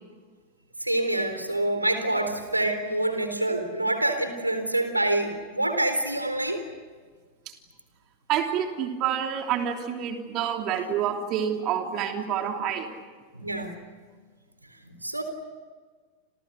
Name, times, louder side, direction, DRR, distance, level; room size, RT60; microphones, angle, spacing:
voice 1, 0.8-6.6 13.3-13.7 14.8-15.2, right 1 dB, 85° right, 8 dB, 4.0 m, -26 dB
voice 2, 8.3-12.9, right 9 dB, 35° right, 4 dB, 3.1 m, -28 dB
30.0 x 28.0 x 6.6 m, 1.5 s
figure-of-eight pair, 90°, 0 cm